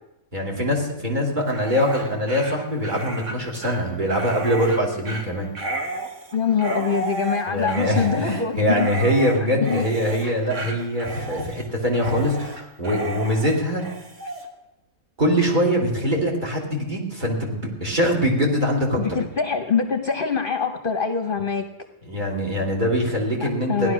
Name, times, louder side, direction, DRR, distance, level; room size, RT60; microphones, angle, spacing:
voice 1, 0.3-5.5 7.5-13.9 15.2-19.0 22.0-23.9, equal, 35° right, 1 dB, 2.8 m, -23 dB
Dog, 1.4-14.5, right 2 dB, 65° right, 1.9 m, -33 dB
voice 2, 6.3-8.9 9.6-9.8 19.0-21.6 23.4-23.9, left 6 dB, 45° left, 7 dB, 1.0 m, -24 dB
16.0 x 11.0 x 6.2 m, 0.95 s
omnidirectional pair, 1.4 m